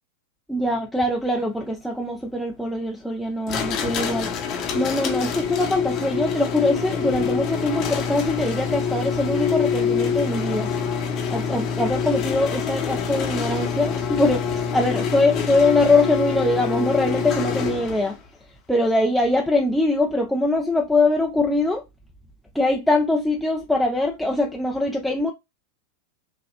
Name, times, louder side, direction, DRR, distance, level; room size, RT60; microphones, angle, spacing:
voice 1, 0.5-4.3 4.7-10.7 11.3-18.2 18.7-21.8 22.5-25.3, left 2 dB, ahead, 0.5 m, -22 dB
sound 1, 3.5-18.2, left 6 dB, 35° left, 0.8 m, -26 dB
5.3 x 2.1 x 2.7 m
figure-of-eight pair, 90°, 0 cm